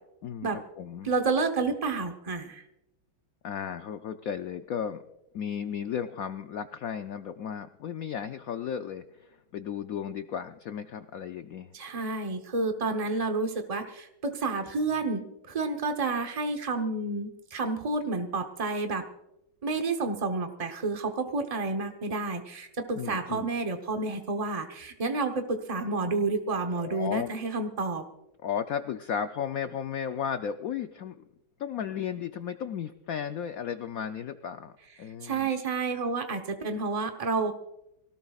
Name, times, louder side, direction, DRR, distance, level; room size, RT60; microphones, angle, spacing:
voice 1, 0.2-1.1 3.4-5.0 5.3-11.7 23.0-23.5 26.7-27.3 28.4-31.2 31.6-34.7 35.0-35.5, left 8 dB, 90° left, 9 dB, 0.7 m, -34 dB
voice 2, 1.0-2.6 11.7-19.0 19.6-28.0 35.2-37.5, right 3 dB, 40° right, 5 dB, 0.5 m, -30 dB
24.5 x 18.0 x 2.4 m, 0.90 s
omnidirectional pair, 2.2 m